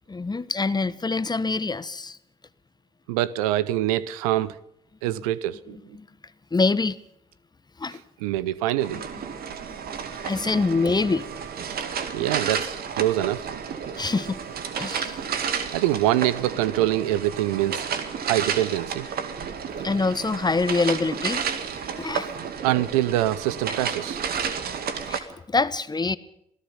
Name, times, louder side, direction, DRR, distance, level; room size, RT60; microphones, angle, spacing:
voice 1, 0.1-2.2 5.1-5.2 5.7-6.1 6.5-7.0 7.8-8.0 8.9-9.0 9.8-11.3 14.0-14.4 14.8-15.2 19.8-21.4 22.0-22.3 25.1-26.2, left 3 dB, 20° left, 1.2 m, -25 dB
voice 2, 3.1-4.6 5.0-5.8 8.2-9.0 12.1-13.4 15.6-17.9 18.2-19.1 22.6-24.2, right 14 dB, 75° right, 0.8 m, -24 dB
sound 1, 8.8-25.2, right 7 dB, 55° right, 2.2 m, -31 dB
27.5 x 18.0 x 5.7 m
figure-of-eight pair, 45°, 19 cm